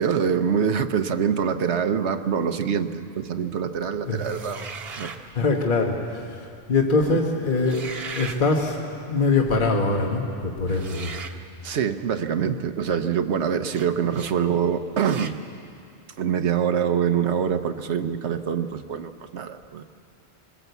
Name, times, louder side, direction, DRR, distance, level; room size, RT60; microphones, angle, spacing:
voice 1, 0.0-4.7 4.9-5.1 7.0-7.2 10.7-11.2 11.6-15.4 16.2-19.8, right 7 dB, 85° right, 8 dB, 1.1 m, -25 dB
voice 2, 4.1-4.4 4.9-5.1 5.3-6.4 6.7-11.1, left 3 dB, 50° left, 1 dB, 1.6 m, -23 dB
sound 1, 4.2-5.2 7.5-8.4 10.8-11.4 13.7-13.9 14.1-14.4 15.0-15.4, right 5 dB, 65° right, 1.3 m, -37 dB
22.0 x 20.0 x 8.2 m, 2.5 s
omnidirectional pair, 1.1 m